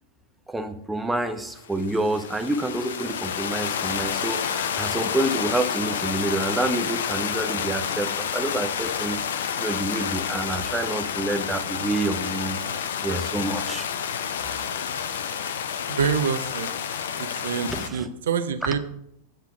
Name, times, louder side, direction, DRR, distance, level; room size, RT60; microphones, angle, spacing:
voice 1, 0.5-9.2 9.6-12.6 13.0-13.9 17.7-18.1, right 2 dB, 5° right, 7 dB, 0.6 m, -28 dB
sound 1, 1.6-17.9, left 8 dB, 60° left, 0.5 m, -29 dB
voice 2, 15.9-16.7 17.2-18.8, right 7 dB, 60° right, 10 dB, 0.5 m, -26 dB
7.5 x 3.5 x 5.8 m, 0.75 s
figure-of-eight pair, 90°, 0 cm